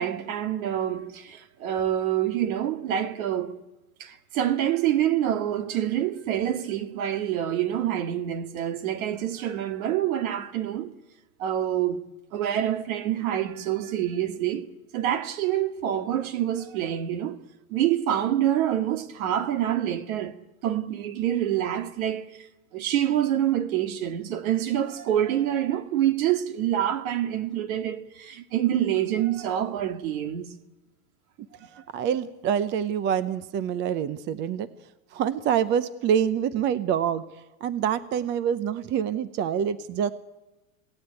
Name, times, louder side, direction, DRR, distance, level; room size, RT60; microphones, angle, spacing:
voice 1, 0.0-3.6 4.0-10.9 11.4-12.0 12.3-14.7 14.9-17.4 17.7-20.3 20.6-22.5 22.7-30.5 31.7-31.8, right 11 dB, 70° right, 2.2 m, -26 dB
voice 2, 31.9-34.7 35.1-37.2 37.6-40.1, right 8 dB, 25° right, 0.7 m, -26 dB
27.5 x 17.5 x 9.1 m
supercardioid pair, 155°, 44 cm